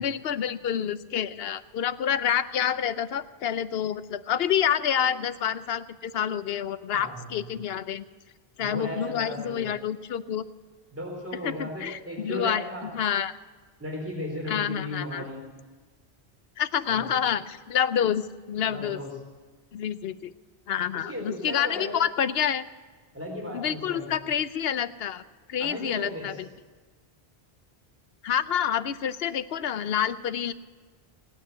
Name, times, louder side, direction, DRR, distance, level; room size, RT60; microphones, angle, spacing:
voice 1, 0.0-8.0 8.6-10.5 11.4-13.4 14.5-15.2 16.6-19.0 19.7-20.3 20.7-22.6 23.5-25.2 25.5-26.4 28.2-30.5, left 9 dB, 70° left, 13 dB, 0.9 m, -28 dB
voice 2, 6.9-7.3 8.6-9.6 10.9-12.9 13.8-15.4 16.9-17.2 18.7-19.1 20.9-22.0 23.1-24.1 25.6-26.3, left 1 dB, 15° right, -1 dB, 4.0 m, -36 dB
18.5 x 9.4 x 8.1 m, 1.4 s
omnidirectional pair, 1.1 m